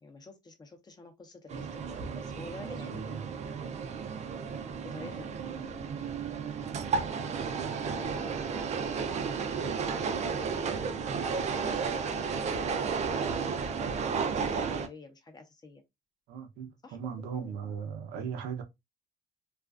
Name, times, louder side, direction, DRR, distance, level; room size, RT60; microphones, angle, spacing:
voice 1, 0.0-3.0 4.8-5.4 7.8-12.5 13.4-15.8 16.8-17.0 17.4-17.5, left 3 dB, 25° left, 0.7 m, -50 dB
sound 1, 1.5-14.9, right 5 dB, 40° right, 0.4 m, -33 dB
voice 2, 2.6-3.2 7.5-7.7 16.3-18.6, right 7 dB, 85° right, 0.6 m, -38 dB
2.4 x 2.3 x 2.3 m
cardioid pair, 110°, 17 cm